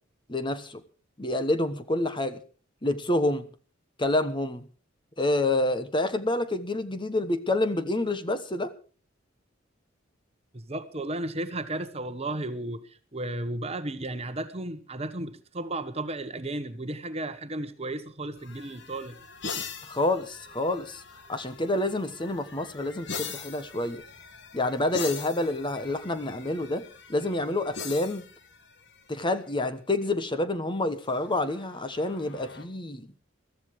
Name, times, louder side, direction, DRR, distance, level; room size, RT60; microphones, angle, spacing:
voice 1, 0.3-0.8 1.2-2.4 2.8-3.5 4.0-4.6 5.2-8.7 19.8-21.0 21.3-24.0 24.5-26.8 27.1-28.2 29.1-33.1, left 2 dB, 25° left, 1.1 m, -28 dB
voice 2, 10.5-19.2, right 2 dB, 30° right, 1.2 m, -34 dB
sound 1, 18.3-29.5 31.1-32.7, left 6 dB, 60° left, 1.6 m, -42 dB
22.5 x 14.0 x 3.2 m
head